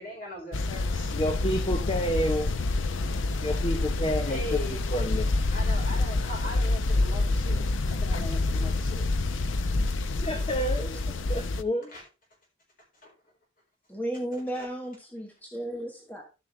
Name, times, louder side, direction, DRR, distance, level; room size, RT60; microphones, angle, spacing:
voice 1, 0.0-1.2 4.3-4.8 5.5-9.4 11.9-12.0 12.9-13.1 14.5-14.7, left 1 dB, 45° left, 4.4 m, -40 dB
sound 1, 0.5-11.6, left 2 dB, 85° left, 0.6 m, -27 dB
voice 2, 1.1-2.5 3.4-5.3 10.2-11.0 11.3-11.9, equal, 30° left, 0.8 m, -29 dB
voice 3, 13.9-16.2, right 1 dB, 10° left, 1.4 m, -34 dB
13.5 x 5.8 x 3.3 m
head